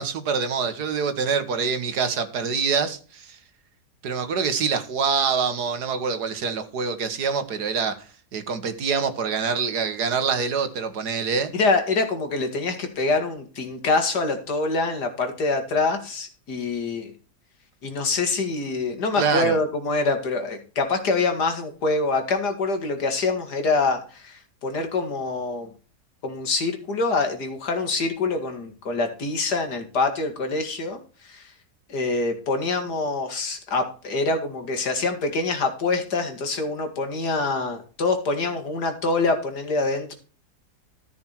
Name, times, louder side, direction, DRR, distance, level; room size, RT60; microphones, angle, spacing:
voice 1, 0.0-3.4 4.0-8.1 8.3-11.5 19.2-19.6, right 5 dB, 75° right, 1.9 m, -25 dB
voice 2, 11.5-17.1 17.8-25.7 26.2-31.5 31.9-40.1, left 3 dB, 80° left, 2.6 m, -25 dB
14.0 x 6.0 x 4.5 m
omnidirectional pair, 1.7 m